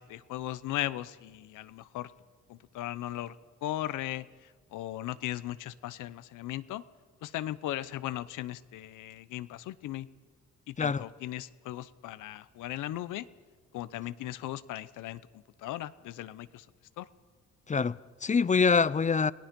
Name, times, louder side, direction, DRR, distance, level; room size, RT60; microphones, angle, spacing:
voice 1, 0.0-2.1 2.5-3.4 3.6-6.8 7.2-10.1 10.7-13.3 13.7-16.7 17.0-17.1, left 14 dB, 85° left, 0.8 m, -37 dB
voice 2, 17.7-19.3, left 5 dB, 25° left, 0.6 m, -25 dB
29.0 x 18.0 x 5.3 m
cardioid pair, 90°, 30 cm